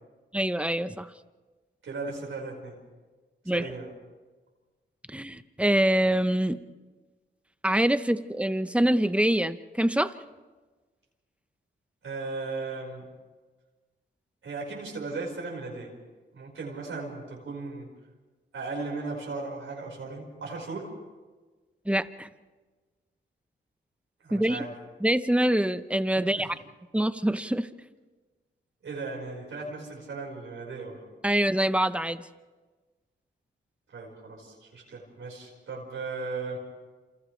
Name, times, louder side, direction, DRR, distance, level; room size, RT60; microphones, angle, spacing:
voice 1, 0.3-1.1 3.5-3.7 5.1-6.6 7.6-10.1 21.9-22.3 24.3-24.6 25.0-26.6 26.9-27.7 31.2-32.2, right 1 dB, 5° right, 11 dB, 0.9 m, -25 dB
voice 2, 1.8-2.8 3.4-3.9 12.0-13.1 14.4-15.9 16.3-17.9 18.5-20.9 24.2-24.7 26.1-26.5 28.8-31.0 33.9-36.6, right 3 dB, 80° right, -3 dB, 5.0 m, -36 dB
28.5 x 27.5 x 3.3 m, 1.3 s
cardioid pair, 70°, 20 cm